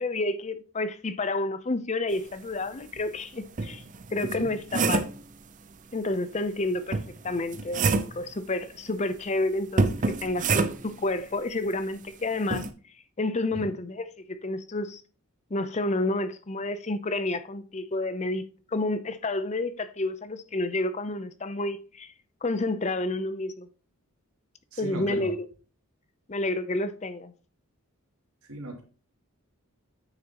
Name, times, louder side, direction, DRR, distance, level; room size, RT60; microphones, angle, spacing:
voice 1, 0.0-3.8 4.1-5.1 5.9-7.0 7.2-12.6 13.2-15.0 15.5-18.4 18.7-22.1 22.4-23.7 24.8-25.5 26.3-27.3, left 2 dB, 30° left, 0.6 m, -30 dB
sound 1, 3.0-3.1 3.6-5.2 6.9-8.2 9.8-11.0 12.5-12.7, right 3 dB, 35° right, 0.6 m, -27 dB
voice 2, 24.7-25.3 28.5-28.8, right 1 dB, 85° right, 2.7 m, -37 dB
8.9 x 6.7 x 2.9 m
head